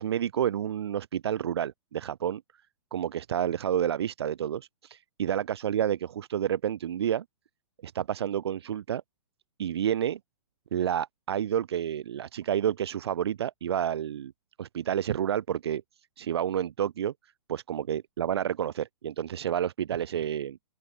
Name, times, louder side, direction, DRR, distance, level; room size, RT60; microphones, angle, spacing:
voice 1, 0.0-2.4 2.9-7.2 7.8-9.0 9.6-10.2 10.7-14.3 14.6-15.8 16.2-17.1 17.5-20.6, right 10 dB, 60° right, 5.3 m, -29 dB
open air
hypercardioid pair, 175°, 15 cm